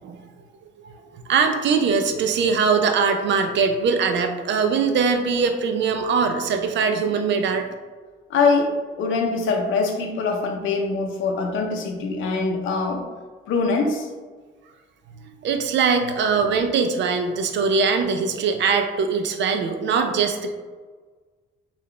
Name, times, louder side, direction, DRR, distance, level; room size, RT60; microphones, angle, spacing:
voice 1, 0.8-7.7 15.2-20.5, right 5 dB, 65° right, 6 dB, 0.5 m, -22 dB
voice 2, 8.3-8.7 9.0-13.0 13.5-14.1, left 4 dB, 80° left, 3 dB, 0.7 m, -23 dB
3.8 x 2.4 x 3.2 m, 1.4 s
cardioid pair, 90°, 20 cm